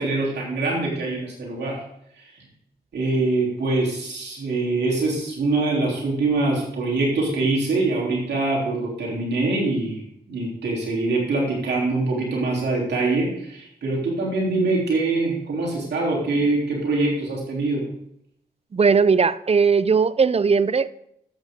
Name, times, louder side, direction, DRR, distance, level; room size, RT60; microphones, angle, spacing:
voice 1, 0.0-1.8 2.9-10.0 10.3-17.8, right 2 dB, 80° right, 3.4 m, -24 dB
voice 2, 18.7-20.9, right 5 dB, 35° right, 0.5 m, -18 dB
12.5 x 8.3 x 3.7 m
cardioid pair, 45°, 17 cm